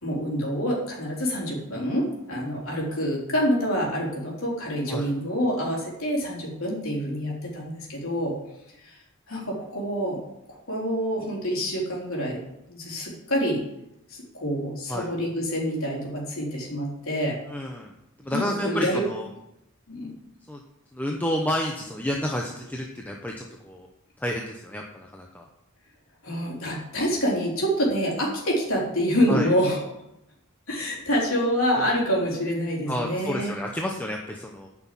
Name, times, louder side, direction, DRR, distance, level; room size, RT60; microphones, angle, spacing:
voice 1, 0.0-8.4 8.8-9.0 9.3-10.2 10.7-12.4 12.7-13.6 14.1-17.4 18.3-19.0 19.9-20.1 26.2-29.8 30.7-33.5, equal, 70° left, -3 dB, 3.6 m, -27 dB
voice 2, 17.5-17.9 18.2-19.3 20.5-20.6 20.9-23.9 24.2-25.4 29.3-29.5 31.8-31.9 32.9-34.7, left 1 dB, 10° left, 0 dB, 0.8 m, -30 dB
9.5 x 6.1 x 7.5 m, 0.85 s
head